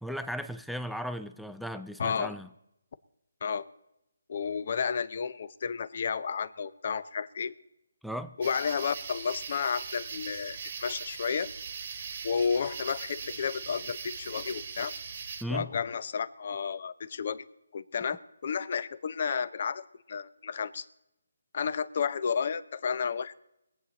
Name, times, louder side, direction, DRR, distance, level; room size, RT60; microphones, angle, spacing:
voice 1, 0.0-2.5 8.0-8.3 15.4-15.7, equal, ahead, 9 dB, 0.4 m, -36 dB
voice 2, 2.0-2.3 3.4-3.7 4.3-7.5 8.4-11.5 12.2-14.9 15.5-17.4 17.7-20.9 21.5-23.4, left 6 dB, 45° left, 16 dB, 0.7 m, -32 dB
sound 1, 8.4-15.4, right 6 dB, 45° right, 1.2 m, -40 dB
22.0 x 8.6 x 4.1 m, 0.85 s
figure-of-eight pair, 160°, 0 cm